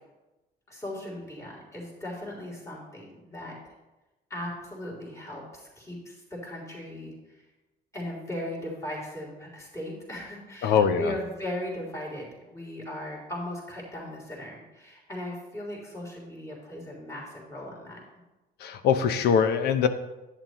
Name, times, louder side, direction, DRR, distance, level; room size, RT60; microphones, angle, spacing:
voice 1, 0.7-3.7 4.3-7.4 7.9-18.0, left 1 dB, 15° left, -3 dB, 3.5 m, -38 dB
voice 2, 10.6-11.1 18.6-19.9, left 7 dB, 75° left, 10 dB, 0.8 m, -22 dB
10.5 x 9.5 x 3.1 m, 1.0 s
cardioid pair, 110°, 17 cm